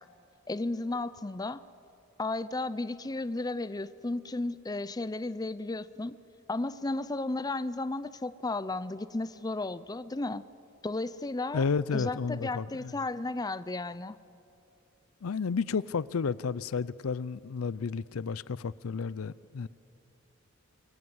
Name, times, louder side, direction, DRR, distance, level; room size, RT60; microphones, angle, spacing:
voice 1, 0.5-1.6 2.2-6.2 6.5-10.4 10.8-11.6 11.9-14.2, left 2 dB, 20° left, 0.5 m, -34 dB
voice 2, 11.5-12.9 15.2-19.7, left 5 dB, 85° left, 0.5 m, -32 dB
26.5 x 22.5 x 8.0 m
head